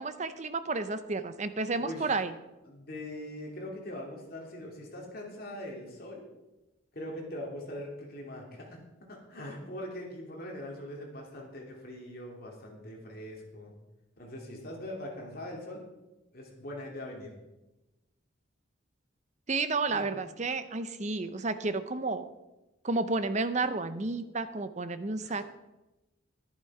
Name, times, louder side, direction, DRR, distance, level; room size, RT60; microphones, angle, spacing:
voice 1, 0.0-2.3 19.5-22.3 22.8-25.4, right 3 dB, 35° right, 11 dB, 0.7 m, -31 dB
voice 2, 1.8-2.1 2.7-6.3 6.9-13.7 14.2-15.8 16.3-17.4 19.9-20.1 25.2-25.4, left 1 dB, 45° left, -1 dB, 2.8 m, -42 dB
11.5 x 10.5 x 4.9 m, 1.0 s
head